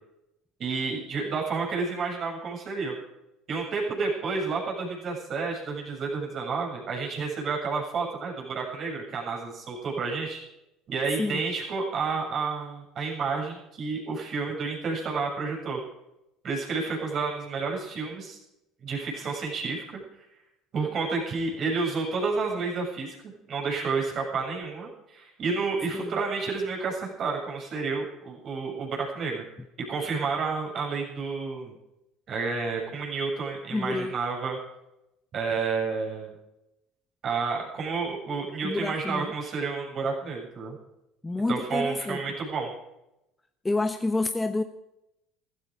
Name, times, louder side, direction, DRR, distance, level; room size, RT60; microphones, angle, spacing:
voice 1, 0.6-3.0 3.5-10.4 10.9-15.8 16.4-18.4 18.8-20.0 20.7-23.1 23.5-29.4 29.8-31.7 32.3-34.6 35.3-36.3 37.2-40.8 41.5-42.7, right 4 dB, 50° right, -2 dB, 7.3 m, -30 dB
voice 2, 33.7-34.1 38.6-39.3 41.2-42.2 43.6-44.6, left 2 dB, 15° left, 8 dB, 1.0 m, -28 dB
15.5 x 14.0 x 5.1 m, 0.89 s
hypercardioid pair, 75°, 0 cm